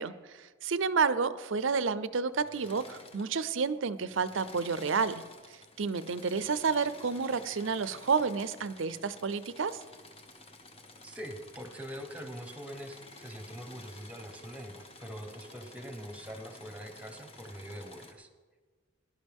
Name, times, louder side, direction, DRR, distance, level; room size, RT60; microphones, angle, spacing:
voice 1, 0.0-5.2 5.8-9.8, right 5 dB, 70° right, 15 dB, 0.6 m, -30 dB
Engine / Mechanisms, 2.3-3.7 4.0-18.1, left 2 dB, 30° left, 1.1 m, -52 dB
voice 2, 11.0-18.3, equal, 5° right, 6 dB, 1.1 m, -43 dB
18.0 x 11.0 x 3.6 m, 1.4 s
head